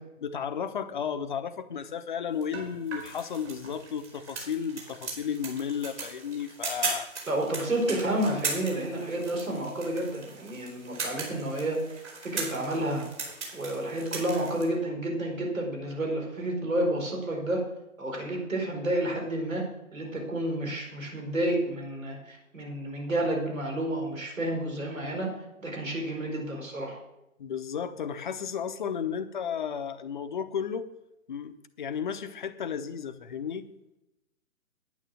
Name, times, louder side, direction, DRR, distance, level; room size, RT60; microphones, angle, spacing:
voice 1, 0.2-7.1 27.4-30.9 31.3-33.7, left 7 dB, 35° left, 9 dB, 0.8 m, -33 dB
Cracking And Frying An Egg Over Easy, 2.4-14.6, right 4 dB, 55° right, 4.6 m, -38 dB
voice 2, 7.3-13.1 13.5-17.6 18.0-19.6 19.9-25.3 25.6-27.0, right 1 dB, 75° right, 0 dB, 5.0 m, -30 dB
10.0 x 9.2 x 6.3 m, 0.90 s
figure-of-eight pair, 140°, 41 cm